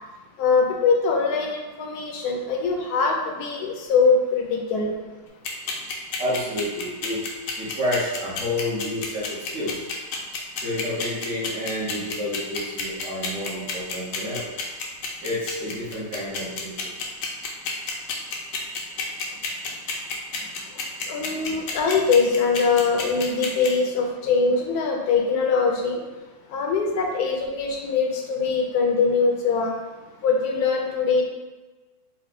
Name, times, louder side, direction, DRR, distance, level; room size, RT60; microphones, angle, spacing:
voice 1, 0.4-4.9 21.1-26.0 26.5-29.7 30.2-31.2, left 4 dB, 65° left, 1 dB, 1.1 m, -22 dB
sound 1, 5.4-23.7, left 6 dB, 85° left, 1.4 m, -29 dB
voice 2, 6.2-7.2 7.6-9.7 10.6-14.5 15.2-16.9, left 1 dB, 50° right, -9 dB, 1.4 m, -29 dB
4.4 x 2.2 x 4.1 m, 1.2 s
omnidirectional pair, 2.0 m